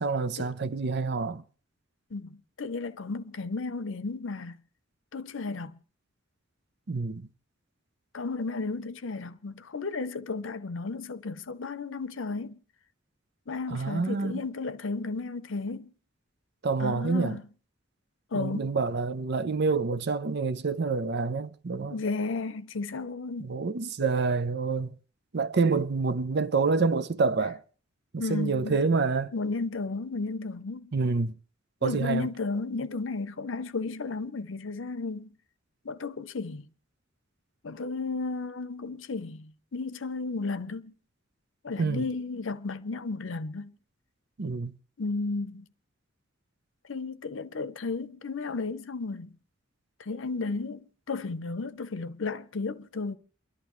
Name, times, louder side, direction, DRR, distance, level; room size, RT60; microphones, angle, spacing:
voice 1, 0.0-1.4 6.9-7.3 13.7-14.4 16.6-17.4 18.3-22.0 23.4-24.9 25.3-27.6 28.1-29.3 30.9-31.3 31.8-32.3 41.8-42.0 44.4-44.7, right 4 dB, 55° right, 0.6 m, -27 dB
voice 2, 2.1-4.6 5.1-5.8 8.1-12.6 13.5-15.9 16.8-17.4 18.3-18.8 21.9-23.5 28.2-28.8 29.3-30.9 31.8-35.4 35.8-36.7 37.6-40.9 41.6-43.8 45.0-45.7 46.9-49.4 50.0-53.2, left 3 dB, 70° left, 0.7 m, -33 dB
29.0 x 11.5 x 3.1 m
head